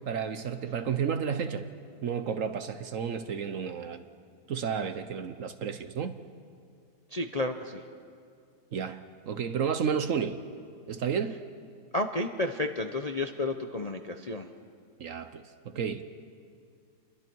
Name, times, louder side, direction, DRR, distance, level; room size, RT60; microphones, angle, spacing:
voice 1, 0.1-1.7 2.0-4.0 4.5-6.1 8.7-10.4 10.9-11.4 15.0-16.0, right 7 dB, 60° right, 10 dB, 1.0 m, -32 dB
voice 2, 7.1-7.8 11.9-14.5, left 2 dB, 35° left, 5 dB, 0.6 m, -31 dB
30.0 x 22.5 x 4.6 m, 2.3 s
omnidirectional pair, 1.8 m